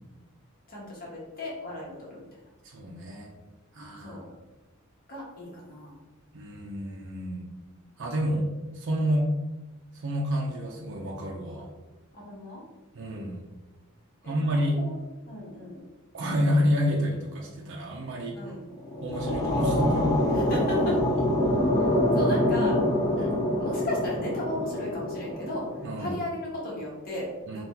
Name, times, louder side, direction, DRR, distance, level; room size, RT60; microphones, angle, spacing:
voice 1, 0.7-2.2 4.0-4.3 5.1-6.0 12.1-12.6 14.2-14.5 14.8-15.8 18.3-18.7 20.3-21.0 21.8-21.9 22.1-22.8 23.6-25.7 26.0-27.6, left 1 dB, 40° left, -5 dB, 1.1 m, -36 dB
voice 2, 2.6-3.3 3.7-4.3 6.3-7.4 8.0-8.5 8.7-9.3 10.0-11.7 12.9-13.4 14.2-14.8 16.1-18.4 19.0-20.1 23.2-23.3 25.8-26.2 27.5-27.6, equal, 55° right, -2 dB, 0.5 m, -29 dB
sound 1, 18.7-25.9, left 1 dB, 15° left, 0.4 m, -25 dB
2.8 x 2.3 x 3.6 m, 1.1 s
head